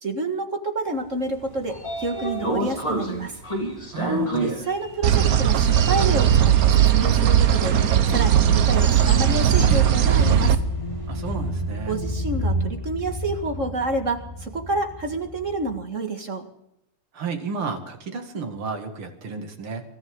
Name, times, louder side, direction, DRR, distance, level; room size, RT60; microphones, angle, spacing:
voice 1, 0.0-3.4 4.4-7.8 8.1-10.6 11.9-16.5, right 2 dB, 35° right, 4 dB, 1.9 m, -28 dB
Sliding door, 1.3-11.4, right 1 dB, 15° left, 3.3 m, -32 dB
voice 2, 3.9-4.6 11.1-11.9 17.1-19.8, right 5 dB, 75° right, 4 dB, 2.9 m, -32 dB
sound 1, 5.0-10.5, right 10 dB, 55° right, 1.0 m, -18 dB
sound 2, 9.8-15.8, equal, 15° right, 4.2 m, -29 dB
25.0 x 13.5 x 3.7 m, 0.78 s
omnidirectional pair, 2.4 m